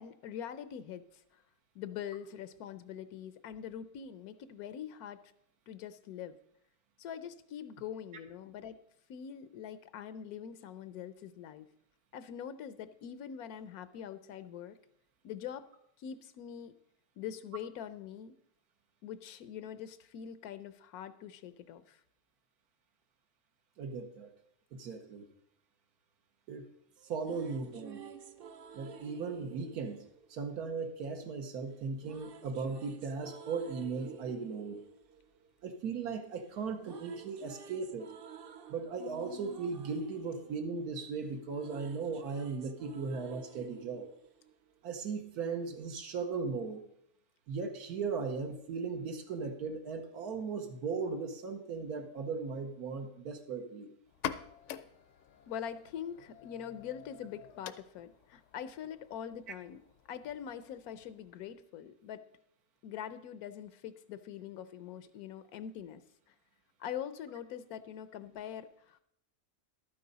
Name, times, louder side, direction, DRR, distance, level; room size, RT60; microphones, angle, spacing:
voice 1, 0.0-1.4 1.7-5.2 5.7-6.4 7.0-8.8 9.1-11.7 12.1-14.8 15.2-15.7 16.0-16.7 17.2-18.3 19.0-22.0 55.5-59.8 60.1-62.2 62.8-66.0 66.8-69.0, left 9 dB, 85° left, 13 dB, 1.1 m, -43 dB
voice 2, 23.8-24.3 24.7-25.3 26.5-26.7 27.0-28.0 28.7-30.0 30.3-34.8 35.6-38.1 38.7-44.1 44.8-46.8 47.5-53.9, right 4 dB, 90° right, 5 dB, 1.5 m, -37 dB
sound 1, 27.0-31.1 32.0-36.2 36.5-45.0, right 7 dB, 60° right, 0.6 m, -52 dB
sound 2, 54.1-61.5, left 9 dB, 65° left, 0.8 m, -47 dB
12.0 x 9.5 x 4.0 m, 0.70 s
omnidirectional pair, 1.6 m